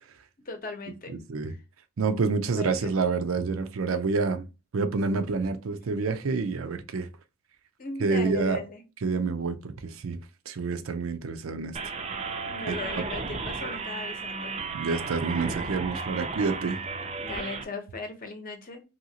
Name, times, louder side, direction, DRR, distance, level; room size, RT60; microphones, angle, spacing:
voice 1, 0.4-1.1 1.5-1.6 2.4-2.9 7.8-8.8 12.4-14.5 17.2-18.8, left 3 dB, 45° left, 0.7 m, -38 dB
voice 2, 2.0-4.5 4.7-7.1 8.0-8.6 9.0-10.2 10.5-11.8 12.7-13.0 14.7-16.8, right 4 dB, 90° right, 0.5 m, -28 dB
sound 1, 11.7-17.6, right 4 dB, 30° right, 0.4 m, -34 dB
2.8 x 2.7 x 2.7 m
head